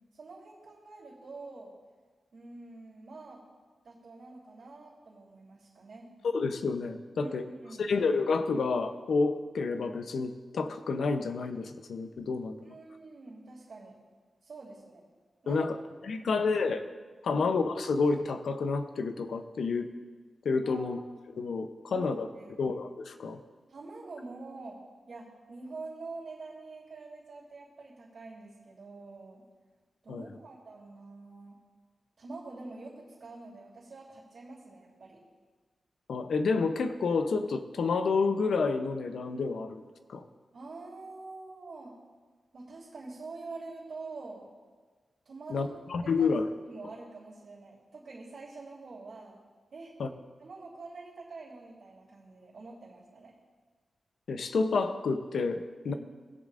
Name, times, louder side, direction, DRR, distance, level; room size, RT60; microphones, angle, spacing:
voice 1, 0.1-1.7 2.3-3.4 3.8-6.1 7.2-7.9 12.6-13.9 14.4-15.0 15.4-15.7 16.2-16.3 17.3-17.5 20.6-21.0 21.9-22.5 23.7-24.8 25.1-29.4 30.0-31.6 32.2-35.2 40.5-41.9 42.5-44.4 45.2-46.3 46.7-49.4 49.7-49.9 50.4-53.3 55.9-56.0, right 3 dB, 65° right, -9 dB, 3.1 m, -46 dB
voice 2, 6.3-7.4 7.8-12.7 15.5-15.7 16.0-16.8 17.2-19.9 20.4-21.0 21.4-22.3 22.6-23.4 30.1-30.3 36.1-39.8 40.1-40.2 45.5-46.5 50.0-50.1 54.3-55.9, left 4 dB, 85° left, 8 dB, 0.7 m, -29 dB
20.0 x 7.4 x 2.5 m, 1.4 s
wide cardioid pair, 95°, 0 cm